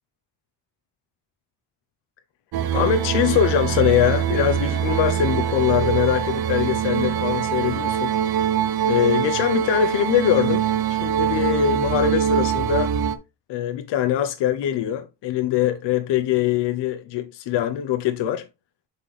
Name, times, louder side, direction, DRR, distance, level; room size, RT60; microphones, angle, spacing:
sound 1, 2.5-13.2, right 9 dB, 65° right, 0.8 m, -23 dB
voice 1, 2.7-8.1 8.9-12.9 13.5-18.5, left 10 dB, 90° left, 0.8 m, -22 dB
7.5 x 4.3 x 3.2 m
cardioid pair, 165°, 41 cm